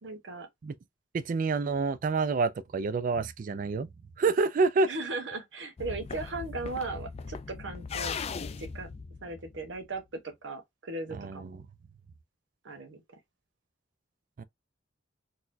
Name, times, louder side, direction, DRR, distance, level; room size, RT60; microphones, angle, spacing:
voice 1, 0.0-0.5 4.8-8.2 8.6-8.9 9.2-11.6 12.6-13.0, right 3 dB, 90° right, 1.0 m, -37 dB
voice 2, 1.1-3.9 4.2-4.9 11.1-11.6 14.4-14.5, right 4 dB, 45° right, 0.3 m, -28 dB
sound 1, 5.8-10.0, left 5 dB, 35° left, 0.3 m, -39 dB
4.1 x 2.2 x 2.6 m
head